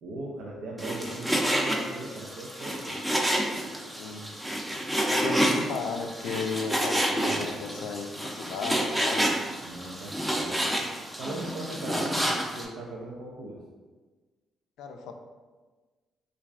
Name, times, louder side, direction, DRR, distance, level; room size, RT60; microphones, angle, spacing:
voice 1, 0.0-3.0 7.2-7.5 9.6-10.7 11.2-13.6, right 2 dB, 80° right, -4 dB, 0.5 m, -39 dB
Frying (food), 0.8-12.6, right 1 dB, 10° right, 0.5 m, -29 dB
voice 2, 4.0-4.3 5.1-9.3 14.8-15.1, left 4 dB, 85° left, 4 dB, 0.4 m, -35 dB
3.1 x 2.5 x 3.4 m, 1.3 s
cardioid pair, 90°, 0 cm